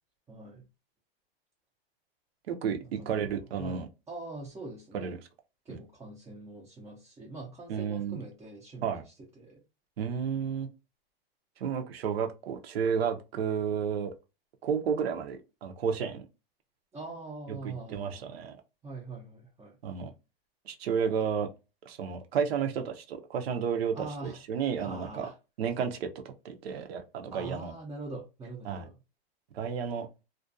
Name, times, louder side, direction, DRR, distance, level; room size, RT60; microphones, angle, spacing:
voice 1, 0.3-0.6 2.8-3.2 3.6-5.1 5.7-9.0 9.4-9.6 16.9-18.3 18.8-19.7 23.9-24.4 24.8-25.4 27.3-28.9, right 3 dB, 10° right, 0.4 m, -43 dB
voice 2, 2.5-3.9 4.9-5.2 5.7-5.8 7.7-8.2 8.8-9.0 10.0-10.7 11.6-14.1 14.6-16.2 17.5-18.6 19.8-20.1 20.7-21.5 21.9-25.3 25.6-26.1 26.4-27.7 28.6-28.8 29.5-30.1, right 7 dB, 85° right, 0.6 m, -32 dB
2.4 x 2.2 x 2.5 m
supercardioid pair, 140°, 30 cm